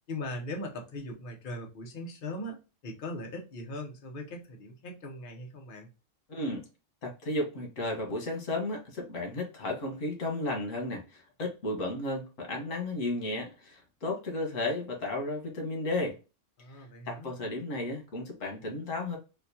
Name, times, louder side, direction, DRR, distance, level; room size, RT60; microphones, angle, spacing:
voice 1, 0.1-2.6 2.8-5.9 16.6-17.3, left 1 dB, 50° left, 0.9 m, -39 dB
voice 2, 6.3-6.7 7.0-16.2 16.7-19.2, left 2 dB, 90° left, 1.6 m, -34 dB
4.3 x 2.3 x 2.7 m
omnidirectional pair, 1.3 m